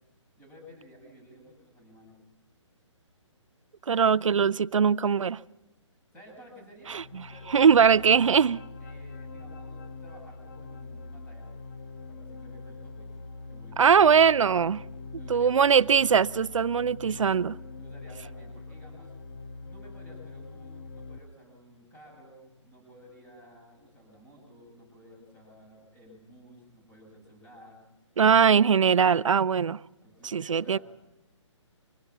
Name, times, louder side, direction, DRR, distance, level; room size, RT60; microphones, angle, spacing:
voice 1, 0.4-2.1 6.1-7.0 7.3-8.4 8.8-11.5 12.1-13.8 15.2-15.9 16.7-17.5 17.8-19.1 19.6-27.8 30.0-30.8, equal, 10° left, 8.0 m, -53 dB
voice 2, 3.9-5.4 6.9-7.0 7.5-8.6 13.8-14.8 15.3-17.5 28.2-29.8 30.3-30.8, right 7 dB, 80° right, 0.6 m, -21 dB
sound 1, 6.8-21.2, left 3 dB, 45° left, 1.1 m, -43 dB
25.0 x 17.5 x 6.0 m
hypercardioid pair, 155°, 16 cm